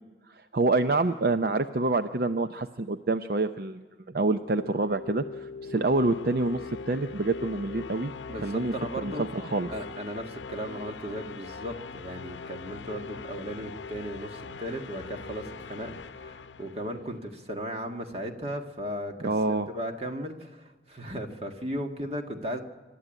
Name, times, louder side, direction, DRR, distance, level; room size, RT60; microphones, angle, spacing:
voice 1, 0.3-3.8 4.1-8.1 8.4-9.7 19.2-19.7, right 3 dB, 55° right, 9 dB, 0.6 m, -27 dB
sound 1, 4.2-17.3, left 4 dB, 85° left, 0.7 m, -41 dB
voice 2, 8.3-9.3 9.7-19.1 19.5-22.6, equal, 35° right, 4 dB, 1.8 m, -36 dB
27.0 x 12.5 x 9.0 m, 1.4 s
head